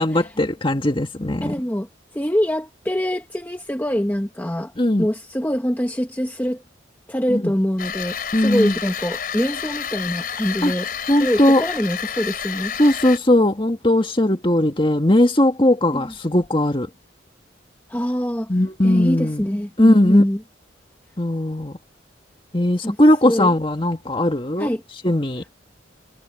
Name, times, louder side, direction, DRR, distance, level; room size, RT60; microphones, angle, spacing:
voice 1, 0.0-1.5 4.8-5.1 7.3-7.5 8.3-8.7 10.6-10.7 11.1-11.6 12.8-16.9 18.5-19.4 19.8-20.3 21.2-21.8 22.5-24.7 25.0-25.4, left 1 dB, 25° left, 1.9 m, -18 dB
voice 2, 1.4-4.7 5.0-6.6 7.1-10.9 11.2-13.0 15.9-16.1 17.9-18.5 18.8-20.4 22.8-23.0 23.2-23.5 24.6-24.8, equal, 10° left, 1.2 m, -24 dB
sound 1, 7.8-13.2, left 8 dB, 45° left, 4.4 m, -30 dB
head